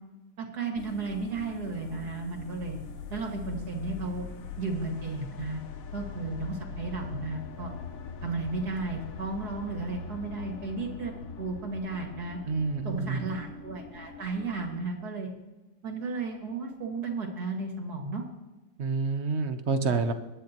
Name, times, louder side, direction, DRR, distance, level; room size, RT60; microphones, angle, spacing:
voice 1, 0.4-2.8 3.1-4.3 4.6-5.6 5.9-7.7 8.2-12.4 12.8-15.3 15.8-18.2, right 3 dB, 65° right, 2 dB, 2.6 m, -34 dB
sound 1, 0.8-14.9, left 6 dB, 60° left, 1.2 m, -42 dB
voice 2, 12.5-13.3 18.8-20.1, right 4 dB, 50° right, 8 dB, 1.0 m, -28 dB
21.0 x 10.0 x 3.0 m, 1.1 s
omnidirectional pair, 1.8 m